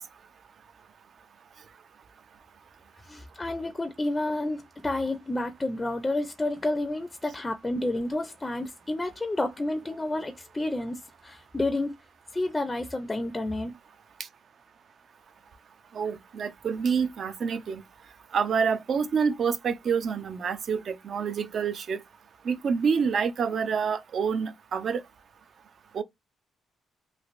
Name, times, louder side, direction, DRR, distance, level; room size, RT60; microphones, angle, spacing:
voice 1, 3.0-11.9 12.3-13.7, left 2 dB, 20° left, 0.5 m, -30 dB
voice 2, 15.9-17.8 18.3-22.0 22.4-25.0 25.9-26.0, right 6 dB, 55° right, 0.4 m, -27 dB
3.2 x 2.5 x 2.5 m
cardioid pair, 90°, 0 cm